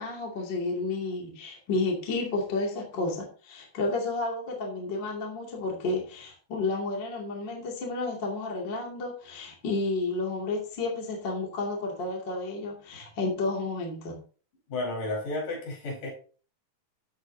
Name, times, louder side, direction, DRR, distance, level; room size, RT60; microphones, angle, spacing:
voice 1, 0.0-14.2, left 3 dB, 35° left, 3.0 m, -31 dB
voice 2, 14.7-16.1, left 2 dB, 65° left, 6.3 m, -32 dB
14.0 x 8.7 x 2.8 m
omnidirectional pair, 4.0 m